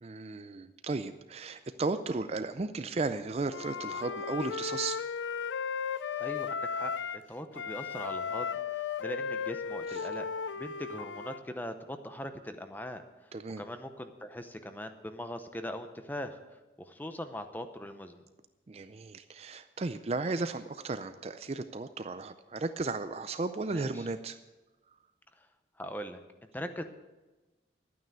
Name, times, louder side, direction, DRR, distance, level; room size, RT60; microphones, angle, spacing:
voice 1, 0.0-5.0 9.9-10.1 13.3-13.6 18.7-24.4, right 3 dB, 35° right, 10 dB, 0.4 m, -35 dB
Wind instrument woodwind instrument, 3.5-7.3 7.5-11.4, left 6 dB, 85° left, 0.4 m, -35 dB
voice 2, 6.1-8.5 8.7-10.3 10.6-13.3 13.6-16.4 16.8-18.2 23.7-24.1 25.8-26.2 26.5-26.8, left 1 dB, 10° left, 8 dB, 0.7 m, -41 dB
11.5 x 9.3 x 6.8 m, 1.1 s
head